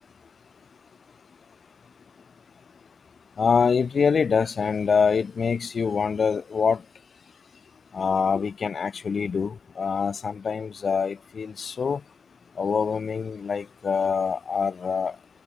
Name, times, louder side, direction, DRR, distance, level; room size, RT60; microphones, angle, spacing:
voice 1, 3.4-6.8 7.9-12.0 12.6-15.2, left 6 dB, 60° left, 2.0 m, -25 dB
wide cardioid pair, 105°, 0 cm